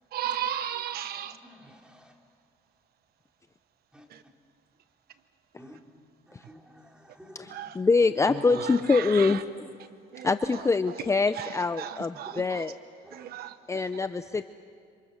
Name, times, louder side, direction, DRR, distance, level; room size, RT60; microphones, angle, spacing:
voice 1, 0.1-1.4 4.1-4.2 7.5-7.8 8.5-9.4 10.1-10.3 11.4-12.6 13.1-14.0, right 10 dB, 65° right, 12 dB, 1.0 m, -35 dB
voice 2, 1.2-2.1 3.9-4.0 5.6-5.8 6.3-7.6 8.3-8.6 12.3-12.4 13.0-13.3 13.7-13.9, equal, 5° right, 2 dB, 3.5 m, -46 dB
voice 3, 7.3-9.7 10.2-12.8 13.7-14.4, left 4 dB, 15° left, 11 dB, 0.6 m, -25 dB
27.5 x 27.0 x 6.7 m, 2.3 s
cardioid pair, 110°, 17 cm